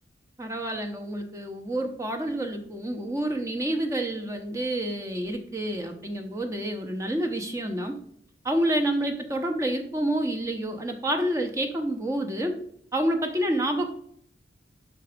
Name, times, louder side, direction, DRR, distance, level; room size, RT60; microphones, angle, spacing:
voice 1, 0.4-8.0 8.4-12.6 12.9-13.9, right 1 dB, 15° right, 4 dB, 0.7 m, -28 dB
5.8 x 4.5 x 5.1 m, 0.68 s
head